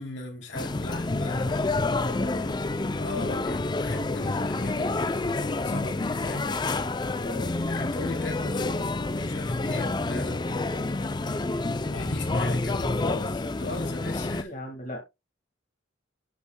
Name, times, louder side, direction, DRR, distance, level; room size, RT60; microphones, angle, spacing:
voice 1, 0.0-2.0 3.0-6.5 7.7-14.5, left 2 dB, 60° left, 2.8 m, -38 dB
sound 1, 0.5-14.4, left 2 dB, 20° left, 0.4 m, -28 dB
voice 2, 2.0-2.6 7.2-7.5 14.3-15.0, left 1 dB, 40° left, 1.8 m, -38 dB
12.0 x 5.5 x 2.2 m
head